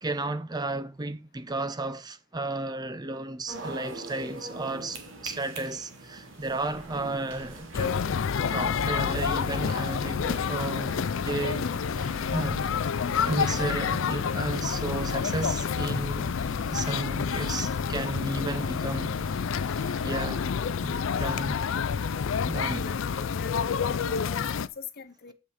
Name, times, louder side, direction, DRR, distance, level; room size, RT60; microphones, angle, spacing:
voice 1, 0.0-8.0 8.5-11.0 11.2-12.7 13.2-16.4 16.6-19.2 19.7-20.5 20.8-21.6 22.5-22.9, right 2 dB, 20° right, 0.5 m, -33 dB
sound 1, 3.5-20.1, right 2 dB, 70° right, 1.9 m, -45 dB
sound 2, 6.5-13.4, equal, 45° right, 2.0 m, -51 dB
sound 3, 7.7-24.7, left 6 dB, 75° left, 0.4 m, -28 dB
voice 2, 22.5-25.3, left 6 dB, 50° left, 0.9 m, -43 dB
7.8 x 5.6 x 4.9 m
head